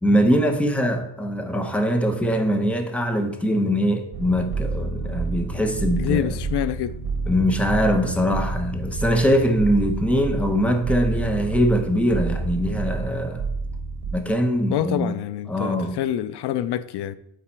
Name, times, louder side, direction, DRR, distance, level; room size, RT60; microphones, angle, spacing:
voice 1, 0.0-6.4 7.3-13.5 14.1-15.1 15.5-16.0, equal, 5° left, 0.7 m, -22 dB
sound 1, 4.1-14.2, right 3 dB, 75° right, 1.2 m, -29 dB
voice 2, 5.9-7.0 14.7-17.2, left 11 dB, 80° left, 0.5 m, -26 dB
8.3 x 4.9 x 4.4 m
wide cardioid pair, 155°, 40 cm